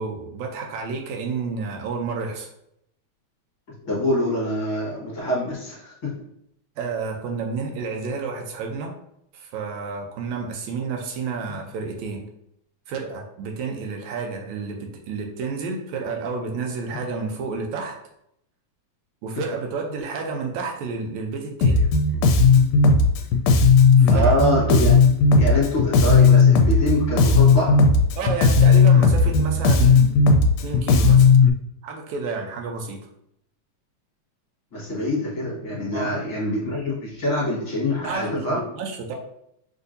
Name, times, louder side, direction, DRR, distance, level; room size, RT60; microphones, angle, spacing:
voice 1, 0.0-2.5 6.8-8.9 9.3-12.2 12.9-18.0 19.2-21.8 24.0-24.3 28.2-30.2 30.6-31.3 31.8-33.0 35.9-36.1 38.0-39.1, right 4 dB, 80° right, 2 dB, 2.0 m, -30 dB
voice 2, 3.8-6.1 24.1-25.0 25.3-27.8 34.7-38.6, left 1 dB, 45° left, -7 dB, 2.0 m, -25 dB
Bass guitar, 21.6-31.5, left 4 dB, 80° left, 1.8 m, -15 dB
6.4 x 2.6 x 2.6 m, 0.75 s
omnidirectional pair, 3.4 m